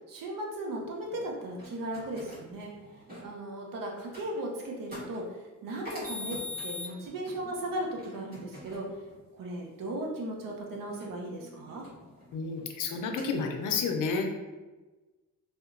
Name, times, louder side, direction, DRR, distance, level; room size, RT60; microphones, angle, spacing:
voice 1, 0.0-2.7 3.2-5.2 5.6-6.4 6.6-8.8 9.3-11.8, right 1 dB, 75° right, 0 dB, 0.6 m, -36 dB
sound 1, 1.1-3.3 4.0-4.4 4.9-5.2 5.8-9.1 11.0-12.6 13.1-13.7, left 3 dB, 25° right, 1.4 m, -43 dB
voice 2, 12.3-14.3, left 4 dB, 65° left, 3 dB, 0.5 m, -30 dB
2.7 x 2.1 x 2.4 m, 1.2 s
cardioid pair, 80°, 34 cm